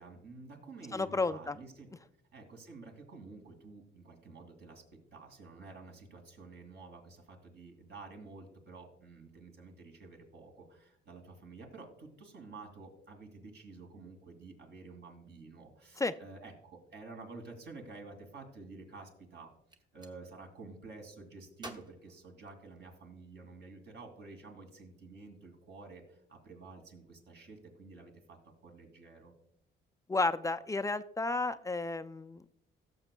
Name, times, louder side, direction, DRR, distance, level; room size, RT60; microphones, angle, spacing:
voice 1, 0.0-1.9 2.3-4.8 5.1-19.5 19.9-29.3, right 3 dB, 60° right, 3 dB, 2.4 m, -50 dB
voice 2, 0.9-1.5 16.0-16.1 30.1-32.5, left 3 dB, 15° left, 10 dB, 0.4 m, -32 dB
Gunshot gunfire, 19.5-20.2 21.6-23.1, right 1 dB, 20° right, 1.0 m, -51 dB
17.5 x 7.1 x 2.2 m, 0.74 s
cardioid pair, 90°, 20 cm